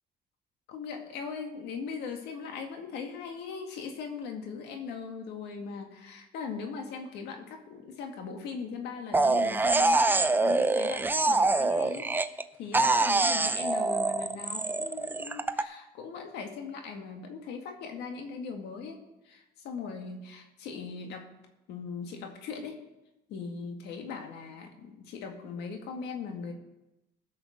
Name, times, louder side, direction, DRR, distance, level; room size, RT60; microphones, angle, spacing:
voice 1, 0.7-21.3 21.7-22.8 23.3-26.5, left 5 dB, 85° left, 4 dB, 2.0 m, -40 dB
sound 1, 9.1-12.4 12.7-15.6, right 3 dB, 10° right, 0.5 m, -25 dB
16.0 x 6.4 x 6.5 m, 0.94 s
cardioid pair, 110°, 17 cm